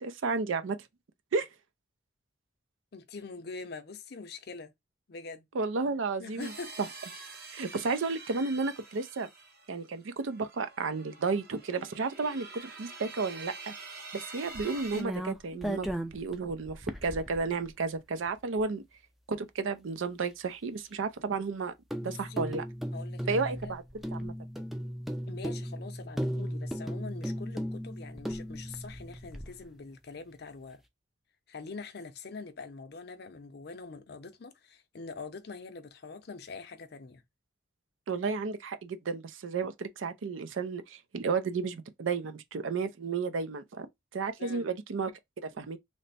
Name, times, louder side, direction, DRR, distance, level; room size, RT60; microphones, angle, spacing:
voice 1, 0.0-0.8 1.3-1.5 5.5-6.5 6.8-6.9 7.5-9.3 9.7-13.7 14.1-15.9 16.1-18.8 19.3-21.7 22.0-22.6 23.3-24.3 38.1-43.9 44.1-45.1 45.4-45.8, right 4 dB, 90° right, 0.5 m, -32 dB
voice 2, 2.9-4.7 5.1-5.5 6.2-6.7 22.0-22.5 22.9-23.7 25.3-30.8 31.5-37.2 44.4-44.7, left 4 dB, 55° left, 0.5 m, -44 dB
sound 1, 6.4-15.0, right 3 dB, 55° right, 0.8 m, -46 dB
sound 2, 14.5-17.7 18.3-18.4 18.6-18.7 21.9-29.6, equal, ahead, 0.3 m, -36 dB
3.2 x 2.0 x 4.0 m
head